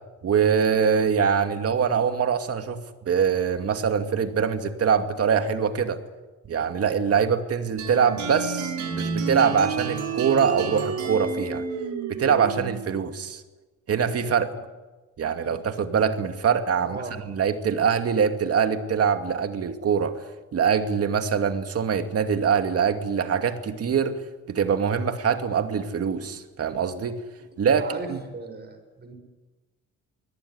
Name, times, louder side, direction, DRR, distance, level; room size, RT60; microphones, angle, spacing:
voice 1, 0.2-6.0 6.5-11.7 12.2-13.4 13.9-14.5 15.2-17.0 17.3-20.1 20.5-24.2 24.5-27.2 27.6-28.2, right 6 dB, 50° right, 7 dB, 2.5 m, -23 dB
sound 1, 7.8-12.9, right 5 dB, 70° right, 5.7 m, -30 dB
voice 2, 16.8-17.1 27.8-29.1, right 3 dB, 35° right, 7 dB, 6.6 m, -37 dB
24.0 x 17.5 x 9.7 m, 1.2 s
cardioid pair, 95°, 30 cm